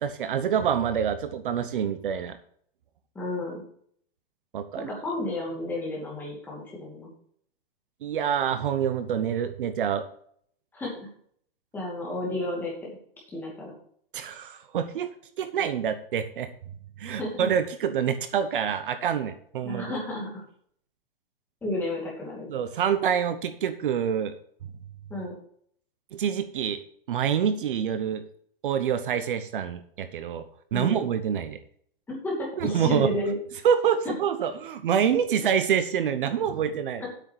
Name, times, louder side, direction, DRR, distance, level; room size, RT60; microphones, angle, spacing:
voice 1, 0.0-2.4 4.5-4.9 8.0-10.0 14.1-15.1 15.4-16.5 17.0-19.9 22.5-24.3 26.1-26.8 27.1-28.2 28.6-30.4 30.7-31.6 32.6-33.1 33.6-37.0, right 8 dB, 60° right, 10 dB, 1.0 m, -26 dB
voice 2, 3.1-3.6 4.8-7.1 10.7-10.9 11.7-13.0 13.3-13.7 17.1-17.5 19.6-20.4 21.6-22.5 25.1-25.3 30.7-31.1 32.1-33.4 34.0-34.1 37.0-37.1, left 1 dB, 5° left, -4 dB, 2.5 m, -32 dB
8.3 x 6.5 x 6.4 m, 0.63 s
hypercardioid pair, 175°, 29 cm